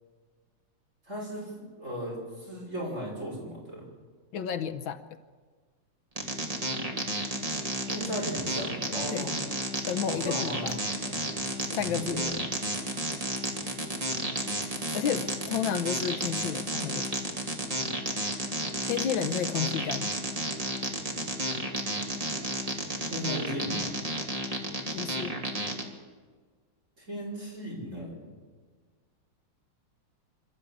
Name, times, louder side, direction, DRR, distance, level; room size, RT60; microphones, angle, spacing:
voice 1, 1.1-3.8 7.8-9.3 10.1-10.7 11.0-11.4 11.7-12.4 23.1-23.9 27.0-28.3, equal, 35° right, -3 dB, 6.2 m, -36 dB
voice 2, 4.3-5.1 9.1-9.3 9.9-10.8 11.7-12.3 14.9-17.0 18.8-20.1 24.9-25.4, left 8 dB, 70° left, 9 dB, 1.6 m, -31 dB
sound 1, 6.2-25.8, right 1 dB, 15° right, 2.3 m, -32 dB
26.5 x 13.5 x 8.5 m, 1.5 s
omnidirectional pair, 2.3 m